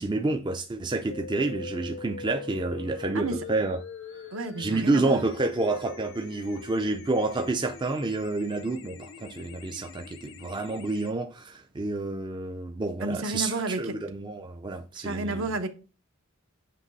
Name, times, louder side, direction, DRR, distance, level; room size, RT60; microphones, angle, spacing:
voice 1, 0.0-3.8 4.1-4.2 4.6-15.4, right 2 dB, 20° right, 0.4 m, -29 dB
sound 1, 1.1-11.1, left 5 dB, 55° left, 0.6 m, -43 dB
voice 2, 4.3-5.2 13.0-14.0 15.0-15.7, right 2 dB, 60° right, 0.8 m, -31 dB
7.5 x 3.1 x 4.0 m
head